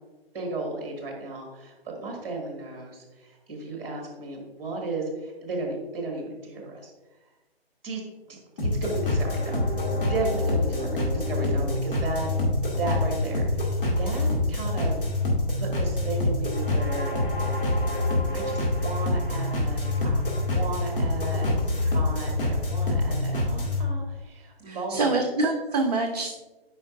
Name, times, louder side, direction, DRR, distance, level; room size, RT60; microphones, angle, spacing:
voice 1, 0.3-6.9 7.8-8.0 8.3-12.3 12.8-15.0 15.6-17.2 18.3-20.2 20.5-25.2, right 2 dB, 15° right, 0 dB, 1.7 m, -34 dB
sound 1, 8.6-23.8, left 2 dB, 60° left, 2.2 m, -26 dB
voice 2, 24.7-26.4, right 3 dB, 40° right, 4 dB, 0.5 m, -26 dB
8.4 x 5.2 x 2.6 m, 1.2 s
figure-of-eight pair, 140°, 31 cm